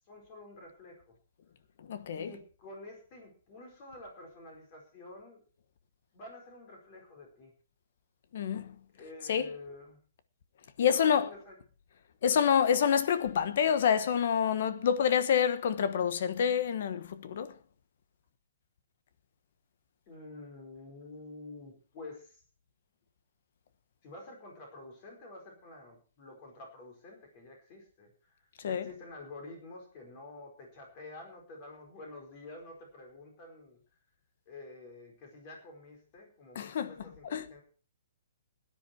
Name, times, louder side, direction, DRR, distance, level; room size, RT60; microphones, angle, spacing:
voice 1, 0.1-1.2 2.1-5.4 6.1-7.5 9.0-10.0 10.8-11.6 12.3-12.5 20.1-22.4 24.0-33.8 34.5-37.6, left 2 dB, 25° left, 4.8 m, -49 dB
voice 2, 1.8-2.3 8.3-8.8 9.3-9.5 10.8-11.3 12.2-17.5 28.6-28.9 36.5-37.5, left 8 dB, 45° left, 1.1 m, -28 dB
17.0 x 10.0 x 4.5 m
hypercardioid pair, 175°, 0 cm